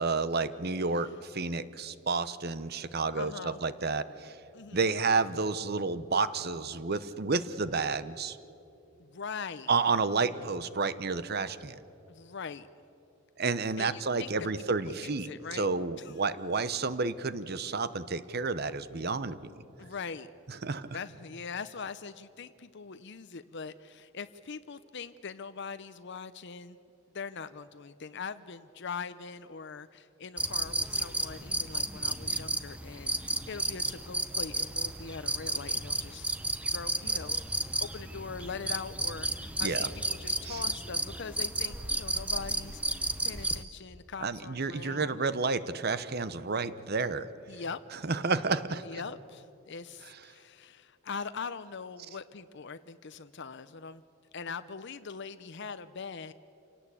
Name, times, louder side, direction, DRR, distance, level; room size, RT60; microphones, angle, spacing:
voice 1, 0.0-4.4 4.7-8.4 9.7-11.8 13.4-19.5 20.6-20.8 39.6-39.9 40.4-40.6 44.2-47.3 48.0-48.8, right 4 dB, 50° right, 14 dB, 0.9 m, -30 dB
voice 2, 3.2-3.6 4.5-4.9 9.0-9.7 10.3-10.5 12.1-12.7 13.8-15.7 16.0-16.1 19.8-20.3 20.9-26.8 27.1-36.3 36.7-37.4 37.8-45.2 47.5-47.8 48.8-54.0 54.3-56.3, left 5 dB, 55° left, 12 dB, 0.7 m, -42 dB
sound 1, 30.4-43.6, right 2 dB, 5° right, 0.7 m, -33 dB
28.0 x 18.0 x 8.5 m, 2.8 s
head